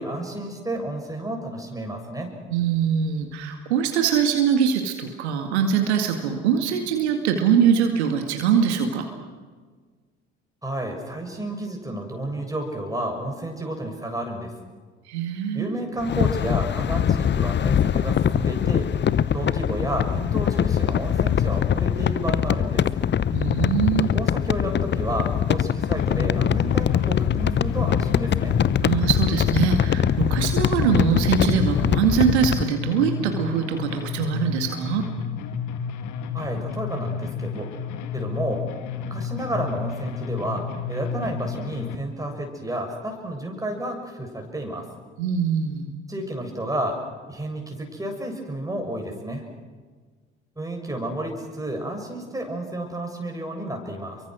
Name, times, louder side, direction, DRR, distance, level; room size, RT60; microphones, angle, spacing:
voice 1, 0.0-2.3 10.6-14.5 15.5-18.9 19.3-22.9 24.0-28.6 36.3-37.7 38.1-38.6 39.1-44.9 46.1-47.0 47.3-49.4 50.6-54.2, right 1 dB, 10° right, 2 dB, 7.0 m, -31 dB
voice 2, 2.5-9.1 15.1-15.7 23.3-24.1 28.8-35.1 45.2-45.9, right 7 dB, 75° right, 5 dB, 2.1 m, -23 dB
sound 1, 16.0-32.7, left 9 dB, 35° left, 0.8 m, -23 dB
sound 2, 25.9-42.0, left 6 dB, 60° left, 2.0 m, -31 dB
29.5 x 23.5 x 6.4 m, 1.5 s
figure-of-eight pair, 55°, 34 cm